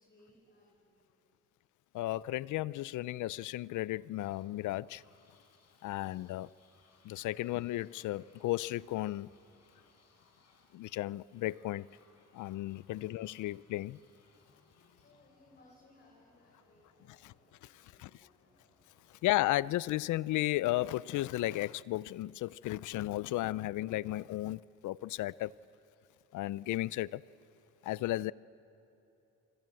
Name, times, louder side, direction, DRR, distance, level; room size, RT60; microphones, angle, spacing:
voice 1, 0.0-1.5 13.3-13.4 14.8-18.6 19.0-19.3, left 1 dB, 35° left, 5.9 m, -66 dB
voice 2, 1.9-5.0 5.8-6.5 7.0-9.3 10.7-11.9 12.3-14.0 17.2-17.3 18.0-18.1 19.2-25.5 26.3-27.2 27.8-28.3, left 16 dB, 80° left, 0.5 m, -34 dB
sound 1, 4.2-20.9, left 4 dB, 60° left, 4.7 m, -68 dB
29.0 x 25.5 x 7.7 m
cardioid pair, 90°, 30 cm